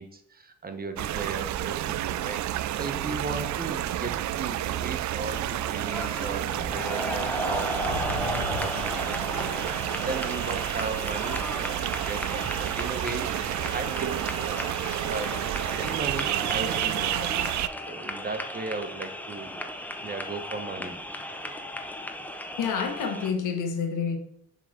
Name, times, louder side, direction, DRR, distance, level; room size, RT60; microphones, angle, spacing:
voice 1, 0.0-11.7 12.0-14.7 15.0-15.4 15.7-17.4 17.9-19.5 20.0-21.0, right 4 dB, 30° right, 7 dB, 1.3 m, -37 dB
sound 1, 1.0-17.7, right 12 dB, 70° right, 0.5 m, -30 dB
sound 2, 5.3-23.3, left 1 dB, 5° left, 1.0 m, -35 dB
sound 3, 6.2-15.9 16.3-16.4, left 3 dB, 60° left, 2.2 m, -43 dB
voice 2, 22.6-24.2, left 6 dB, 85° left, 5 dB, 1.6 m, -28 dB
7.4 x 3.9 x 6.7 m, 0.74 s
cardioid pair, 90°, 30 cm